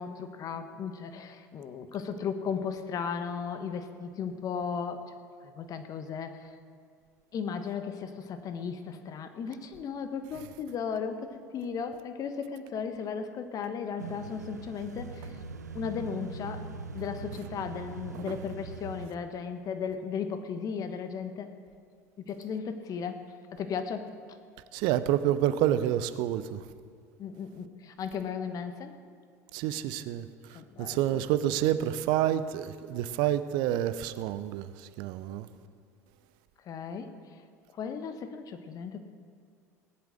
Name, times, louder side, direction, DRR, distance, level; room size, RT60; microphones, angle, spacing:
voice 1, 0.0-5.0 5.4-6.5 7.3-15.3 15.7-16.7 16.9-21.5 22.2-23.2 23.5-24.1 27.2-28.9 30.5-31.2 36.7-37.2 37.7-39.0, left 6 dB, 40° left, 1.3 m, -36 dB
sound 1, 14.0-19.1, right 5 dB, 90° right, 0.6 m, -42 dB
voice 2, 24.7-26.6 29.5-35.5, right 12 dB, 60° right, 0.7 m, -29 dB
18.5 x 8.3 x 6.4 m
figure-of-eight pair, 70°, 9 cm